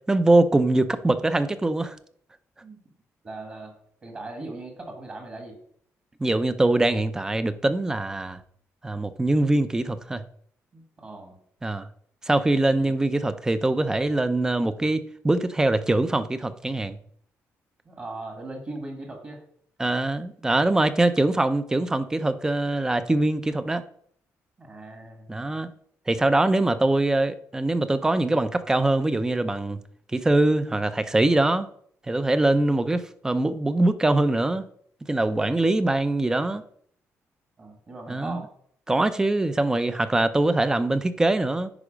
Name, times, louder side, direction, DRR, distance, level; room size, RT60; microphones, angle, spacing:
voice 1, 0.1-2.0 6.2-8.4 8.8-10.2 11.6-11.9 12.3-17.0 19.8-23.8 25.3-25.7 26.1-29.8 30.1-31.7 32.1-34.7 35.1-36.6 38.1-38.4 38.9-41.7, right 2 dB, 10° right, 0.5 m, -23 dB
voice 2, 3.2-3.7 4.0-5.6 10.7-11.4 12.8-12.9 17.8-19.4 24.6-25.5 37.6-38.5, right 2 dB, 30° right, 1.6 m, -39 dB
9.8 x 4.7 x 5.0 m
cardioid pair, 165°, 5 cm